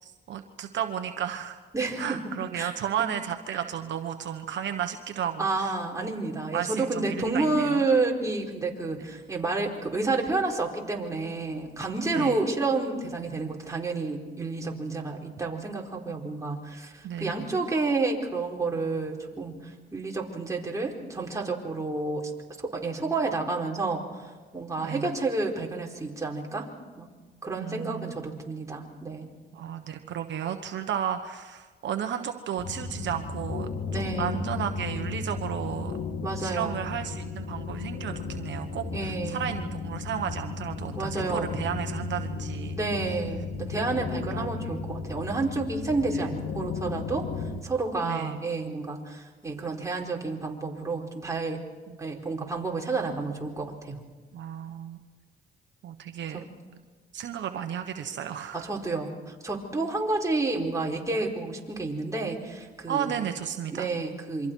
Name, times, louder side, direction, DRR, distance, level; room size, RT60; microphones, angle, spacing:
voice 1, 0.0-1.6 2.0-6.1 6.5-7.8 9.0-9.1 12.1-12.4 17.0-17.4 24.8-25.2 27.6-28.1 29.5-33.7 34.0-36.0 36.4-42.8 44.3-44.8 46.1-46.3 48.0-48.5 51.9-52.0 54.3-55.0 55.8-56.4 57.1-58.7 62.9-63.9, right 9 dB, 65° right, 6 dB, 1.2 m, -33 dB
voice 2, 1.7-2.2 2.5-2.7 3.5-3.6 5.4-22.3 22.6-24.3 24.5-26.7 27.0-27.1 27.4-29.3 33.9-34.5 36.2-36.9 38.9-39.5 40.9-41.5 42.7-47.3 47.6-51.6 52.0-54.0 56.3-56.5 58.5-63.1 63.7-64.5, right 3 dB, 15° right, -1 dB, 4.4 m, -30 dB
sound 1, 32.6-47.6, left 4 dB, 70° left, 2.5 m, -34 dB
28.0 x 24.5 x 4.6 m, 1.4 s
cardioid pair, 90°, 20 cm